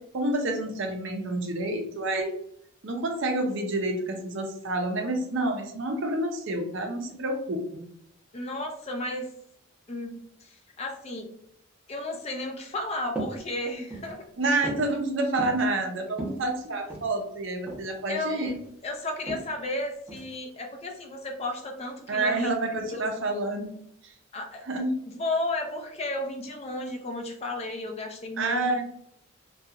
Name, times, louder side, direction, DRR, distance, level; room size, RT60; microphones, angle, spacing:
voice 1, 0.0-2.3 2.8-7.8 14.4-18.6 22.1-23.8 24.6-24.9 28.4-28.8, right 2 dB, 60° right, 3 dB, 0.5 m, -28 dB
voice 2, 8.3-9.3 9.9-11.3 11.9-14.3 18.1-18.5 18.8-22.5 22.9-23.0 24.3-24.6 25.1-28.7, left 2 dB, 30° left, 3 dB, 0.4 m, -33 dB
sound 1, 13.1-13.4 13.8-14.2 14.6-14.9 15.4-15.6 16.1-17.1 17.7-17.9 18.2-18.7 19.3-19.5 20.1-20.3, right 2 dB, 10° right, 0.6 m, -35 dB
2.8 x 2.3 x 2.3 m, 0.73 s
head